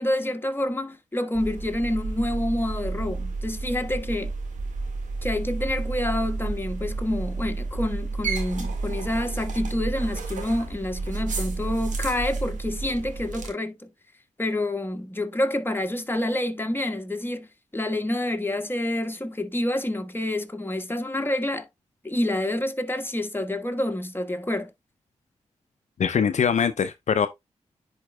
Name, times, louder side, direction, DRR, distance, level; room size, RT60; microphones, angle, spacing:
voice 1, 0.0-4.3 5.2-13.9 14.4-17.5 17.7-21.7 22.0-24.7, left 1 dB, 15° left, 1.4 m, -28 dB
sound 1, 1.3-13.5, right 3 dB, 80° right, 1.8 m, -31 dB
voice 2, 26.0-27.3, left 7 dB, 70° left, 0.5 m, -22 dB
10.5 x 4.5 x 2.2 m
cardioid pair, 40°, 13 cm